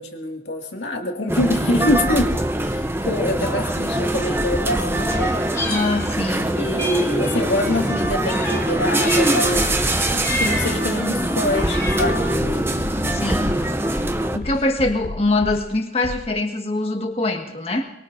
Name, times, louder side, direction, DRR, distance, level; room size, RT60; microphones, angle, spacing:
voice 1, 0.0-5.4 6.6-9.7 10.1-12.9, left 1 dB, 75° left, 2 dB, 2.2 m, -25 dB
sound 1, 1.3-14.4, right 1 dB, 15° right, 0.7 m, -22 dB
Meow, 5.0-6.4 6.8-9.5 9.9-10.9 11.4-12.3, left 1 dB, 15° left, 4.9 m, -31 dB
voice 2, 5.6-6.6 13.1-13.6 14.3-17.8, left 2 dB, 35° left, 3 dB, 1.7 m, -23 dB
sound 2, 8.0-8.7 9.5-9.7 10.5-10.7 11.5-11.7 12.0-13.7 14.4-15.7 16.0-16.3, left 2 dB, 55° left, 0.5 m, -34 dB
23.0 x 23.0 x 2.7 m, 0.86 s
head